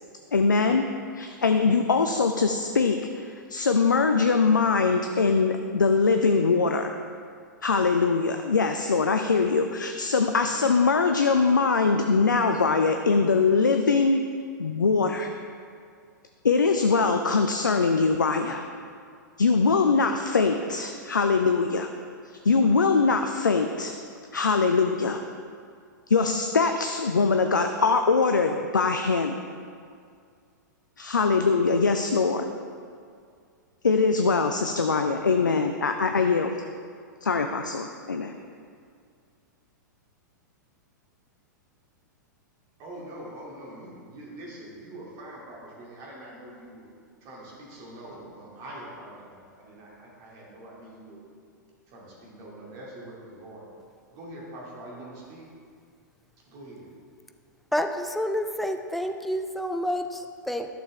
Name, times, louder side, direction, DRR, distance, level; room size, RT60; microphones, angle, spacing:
voice 1, 0.3-0.9 1.2-7.0 7.6-14.2 14.6-15.3 16.4-18.6 19.4-21.9 22.3-23.9 24.3-25.2 26.1-29.4 31.0-32.5 33.8-36.6 37.2-38.3, left 4 dB, 75° left, 6 dB, 0.4 m, -22 dB
voice 2, 42.8-46.8 47.2-51.3 51.9-53.7 54.1-55.5 56.5-56.9, right 1 dB, 35° right, -4 dB, 2.4 m, -44 dB
voice 3, 57.7-60.7, equal, ahead, 6 dB, 0.4 m, -29 dB
11.5 x 6.6 x 3.3 m, 2.2 s
figure-of-eight pair, 100°, 10 cm